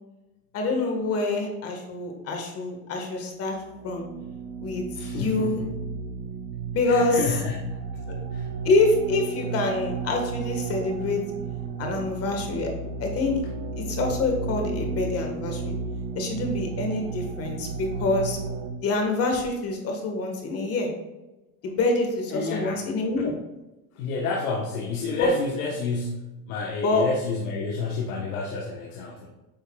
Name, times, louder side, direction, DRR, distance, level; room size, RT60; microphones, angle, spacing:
voice 1, 0.5-3.5 3.8-4.1 4.6-5.6 6.7-7.2 8.6-11.2 11.8-12.7 13.0-13.4 13.8-15.7 16.1-18.4 18.8-20.9 21.6-23.3 25.2-25.3 26.8-27.0, left 3 dB, 30° left, 2 dB, 1.6 m, -26 dB
sound 1, 3.5-18.7, right 5 dB, 55° right, 1.1 m, -33 dB
voice 2, 4.9-5.7 6.8-7.8 8.3-8.5 22.3-22.8 23.2-23.3 23.9-29.3, left 3 dB, 65° left, -1 dB, 1.3 m, -29 dB
8.7 x 5.5 x 2.3 m, 1.0 s
supercardioid pair, 130°, 46 cm